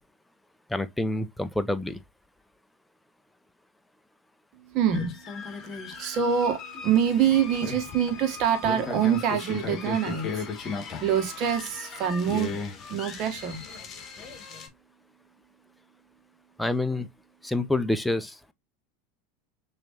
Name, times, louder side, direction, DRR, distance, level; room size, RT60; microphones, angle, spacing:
voice 1, 0.7-2.0 16.6-17.1 17.4-18.5, left 2 dB, 5° left, 0.7 m, -27 dB
voice 2, 4.5-12.5 12.9-13.6, right 8 dB, 50° right, 1.5 m, -26 dB
sound 1, 4.9-14.7, left 5 dB, 35° left, 1.8 m, -37 dB
6.4 x 3.1 x 2.7 m
hypercardioid pair, 95°, 0 cm